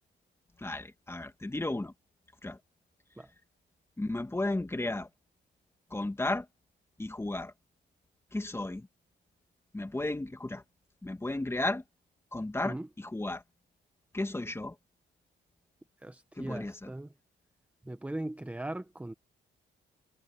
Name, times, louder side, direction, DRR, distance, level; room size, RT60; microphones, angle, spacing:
voice 1, 0.6-1.9 2.4-2.6 4.0-5.1 5.9-6.5 7.0-7.5 8.3-8.9 9.7-10.6 11.0-11.8 12.3-13.4 14.1-14.8 16.4-16.9, left 2 dB, 10° left, 1.8 m, -34 dB
voice 2, 16.0-17.1 17.8-19.1, right 1 dB, 5° right, 0.9 m, -39 dB
cardioid pair, 90°, 20 cm